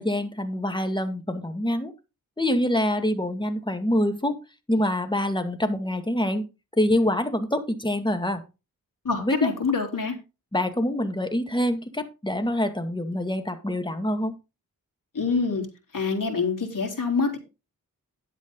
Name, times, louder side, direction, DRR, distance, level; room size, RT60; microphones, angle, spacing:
voice 1, 0.0-1.9 2.4-4.4 4.7-6.5 6.8-8.4 9.2-9.5 10.5-14.3, left 1 dB, 15° left, 7 dB, 2.1 m, -25 dB
voice 2, 9.0-10.1 15.1-15.7 15.9-17.4, left 4 dB, 65° left, 3 dB, 3.6 m, -25 dB
11.0 x 8.2 x 3.9 m, 0.28 s
cardioid pair, 55°, 35 cm